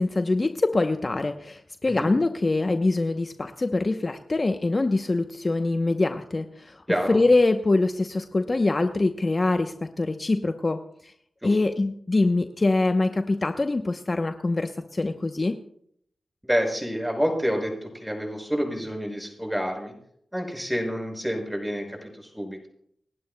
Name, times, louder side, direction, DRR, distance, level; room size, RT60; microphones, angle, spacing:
voice 1, 0.0-10.8 11.4-15.6, left 2 dB, 40° left, 7 dB, 0.8 m, -24 dB
voice 2, 6.9-7.2 11.4-11.6 16.4-19.9 20.3-22.7, equal, 5° right, 1 dB, 6.0 m, -28 dB
29.5 x 11.0 x 2.2 m, 0.68 s
cardioid pair, 45°, 0 cm